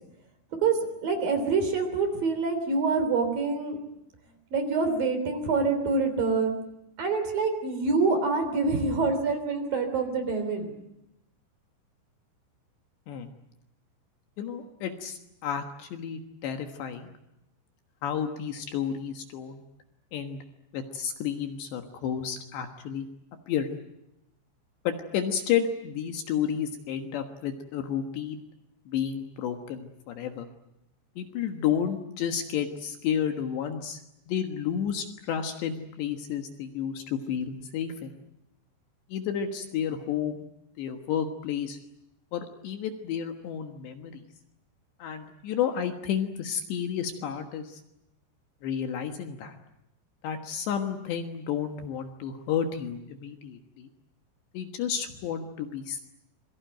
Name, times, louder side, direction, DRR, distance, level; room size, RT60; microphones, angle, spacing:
voice 1, 0.6-3.8 4.5-6.5 7.0-10.7, right 4 dB, 45° right, 8 dB, 4.7 m, -26 dB
voice 2, 14.4-17.1 18.0-19.6 20.1-20.4 20.7-23.1 23.5-23.7 24.8-28.4 28.9-30.5 31.2-34.0 34.3-38.1 39.1-40.4 40.8-41.8 42.3-44.2 45.0-47.8 48.6-49.6 50.2-53.9 54.5-56.0, left 8 dB, 65° left, 6 dB, 3.3 m, -31 dB
27.0 x 23.0 x 9.2 m, 0.87 s
omnidirectional pair, 5.9 m